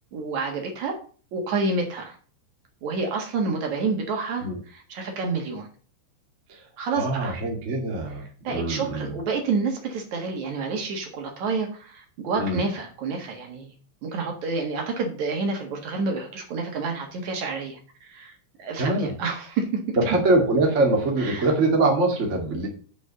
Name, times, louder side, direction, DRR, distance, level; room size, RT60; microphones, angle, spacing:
voice 1, 0.1-1.0 1.3-2.2 2.8-4.5 4.7-5.7 6.8-7.4 8.4-13.7 14.0-18.3 18.6-19.7 21.2-21.5, right 4 dB, 60° right, 2 dB, 2.0 m, -29 dB
voice 2, 6.9-9.1 12.4-12.6 18.8-19.1 19.9-22.7, right 2 dB, 80° right, 0 dB, 0.6 m, -23 dB
8.4 x 5.2 x 6.8 m, 0.41 s
omnidirectional pair, 5.5 m